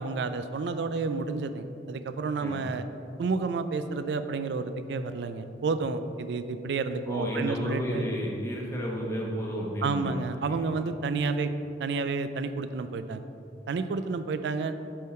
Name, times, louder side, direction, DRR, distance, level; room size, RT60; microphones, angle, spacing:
voice 1, 0.0-2.8 3.2-8.1 9.8-11.5 11.8-13.2 13.7-14.7, right 4 dB, 75° right, 10 dB, 0.3 m, -30 dB
voice 2, 7.1-10.2 10.5-10.6, equal, 15° left, -2 dB, 0.9 m, -32 dB
7.6 x 3.7 x 4.3 m, 2.7 s
head